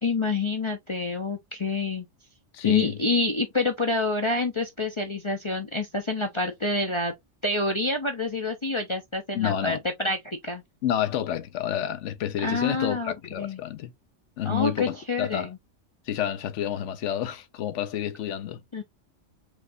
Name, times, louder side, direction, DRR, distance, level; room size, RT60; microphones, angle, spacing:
voice 1, 0.0-2.1 2.6-7.1 7.4-10.6 12.4-13.6 14.4-15.6 18.7-18.8, left 2 dB, 30° left, 0.6 m, -27 dB
voice 2, 2.5-3.0 9.3-9.8 10.8-13.9 14.4-15.5 16.1-18.6, left 11 dB, 65° left, 0.9 m, -29 dB
4.9 x 3.2 x 2.6 m
omnidirectional pair, 1.4 m